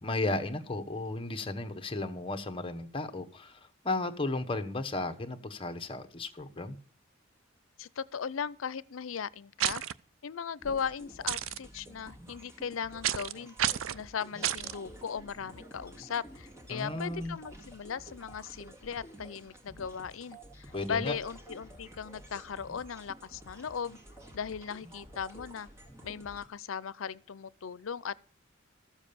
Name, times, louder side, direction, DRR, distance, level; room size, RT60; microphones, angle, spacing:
voice 1, 0.0-3.6 3.8-6.8 16.7-17.4 20.7-21.2, left 2 dB, 25° left, 1.1 m, -34 dB
voice 2, 7.8-9.8 10.2-13.5 13.9-24.0 24.3-25.7 26.0-28.2, left 7 dB, 85° left, 0.5 m, -38 dB
sound 1, 9.6-9.9 11.3-11.6 13.0-13.3 13.6-14.0 14.4-14.7, right 11 dB, 85° right, 0.5 m, -30 dB
sound 2, 10.6-26.5, right 1 dB, 15° right, 2.1 m, -51 dB
14.0 x 7.3 x 6.8 m
head